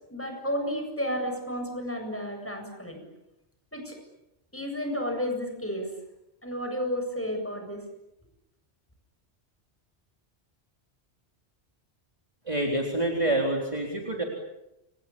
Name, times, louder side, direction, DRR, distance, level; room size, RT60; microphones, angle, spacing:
voice 1, 0.1-3.0 3.7-4.0 4.5-5.9 6.4-7.8, equal, 10° left, 3 dB, 7.7 m, -32 dB
voice 2, 12.5-14.2, right 1 dB, 30° right, 0 dB, 4.0 m, -27 dB
29.5 x 27.5 x 7.2 m, 0.90 s
omnidirectional pair, 1.1 m